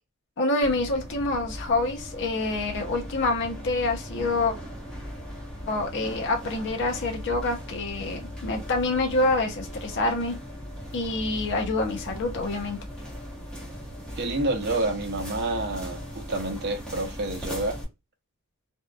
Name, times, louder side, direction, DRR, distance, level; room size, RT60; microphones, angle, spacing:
voice 1, 0.4-4.5 5.7-10.4 10.9-12.8, left 2 dB, 55° left, 0.7 m, -27 dB
sound 1, 0.6-17.8, equal, 5° left, 1.0 m, -38 dB
voice 2, 14.2-17.8, right 2 dB, 50° right, 0.6 m, -28 dB
2.7 x 2.3 x 2.3 m
head